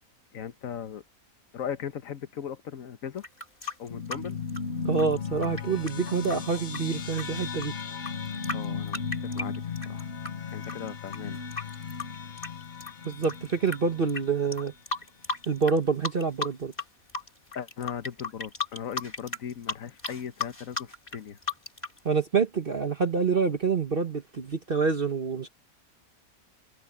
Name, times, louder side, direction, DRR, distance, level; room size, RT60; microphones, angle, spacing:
voice 1, 0.3-1.0 1.5-3.2 3.8-4.4 8.5-10.1 10.5-11.4 17.5-21.4, left 8 dB, 65° left, 1.5 m, -38 dB
sound 1, 3.2-10.3 10.6-13.8 14.1-14.2 14.5-15.8 16.0-16.8 17.1-22.0, left 4 dB, 25° left, 2.8 m, -35 dB
sound 2, 3.9-14.7, left 5 dB, 45° left, 1.3 m, -36 dB
voice 2, 4.8-7.7 13.0-14.7 15.5-16.7 22.0-25.5, right 5 dB, 40° right, 1.3 m, -27 dB
omnidirectional pair, 1.6 m